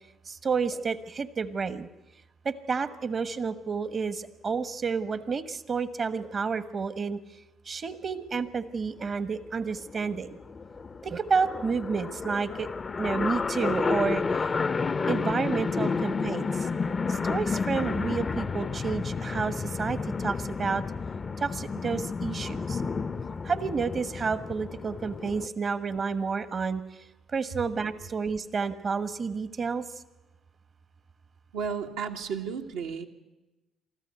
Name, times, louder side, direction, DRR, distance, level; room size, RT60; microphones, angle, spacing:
voice 1, 0.3-1.9 2.4-7.2 7.7-10.4 11.0-12.7 13.0-14.5 15.1-16.5 17.1-20.8 21.4-22.8 23.4-26.8 27.3-29.8, right 5 dB, 45° right, 12 dB, 1.2 m, -30 dB
sound 1, 9.0-9.1 9.4-9.5 9.6-25.5, left 4 dB, 40° left, 0.6 m, -31 dB
voice 2, 31.5-33.1, right 6 dB, 75° right, 2 dB, 1.5 m, -33 dB
24.0 x 14.0 x 8.2 m, 1.1 s
hypercardioid pair, 50°, 0 cm